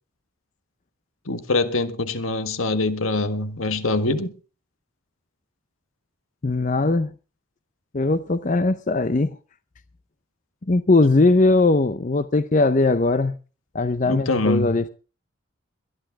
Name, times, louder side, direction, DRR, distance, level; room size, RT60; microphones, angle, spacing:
voice 1, 1.3-4.3 14.1-14.9, left 2 dB, 80° left, 1.6 m, -24 dB
voice 2, 6.4-7.1 7.9-9.4 10.7-13.4 13.7-14.9, left 2 dB, 35° left, 0.6 m, -20 dB
22.0 x 11.5 x 3.6 m
head